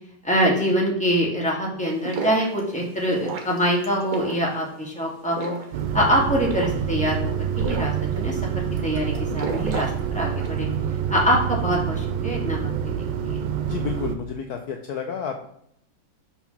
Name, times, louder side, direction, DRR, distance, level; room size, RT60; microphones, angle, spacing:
voice 1, 0.2-5.5 5.9-9.9 10.1-10.7 11.1-13.4, equal, 5° left, -2 dB, 1.7 m, -24 dB
sound 1, 1.8-10.6, right 4 dB, 55° right, 1.6 m, -35 dB
sound 2, 5.7-14.2, right 8 dB, 80° right, 1.4 m, -27 dB
voice 2, 13.6-15.5, left 6 dB, 65° left, 5 dB, 1.1 m, -30 dB
5.8 x 4.2 x 5.9 m, 0.72 s
omnidirectional pair, 1.9 m